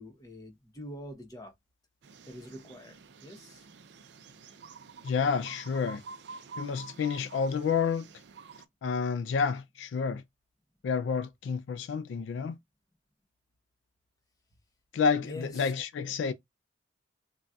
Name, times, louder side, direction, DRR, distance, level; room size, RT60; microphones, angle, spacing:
voice 1, 0.0-1.5 2.3-3.0 3.2-3.6 15.2-15.7, left 1 dB, 20° left, 0.8 m, -44 dB
sound 1, 2.0-8.7, right 5 dB, 65° right, 0.4 m, -49 dB
voice 2, 5.0-6.0 6.6-8.1 8.8-10.2 10.8-12.6 14.9-16.3, left 5 dB, 75° left, 0.3 m, -29 dB
3.9 x 2.2 x 2.3 m
head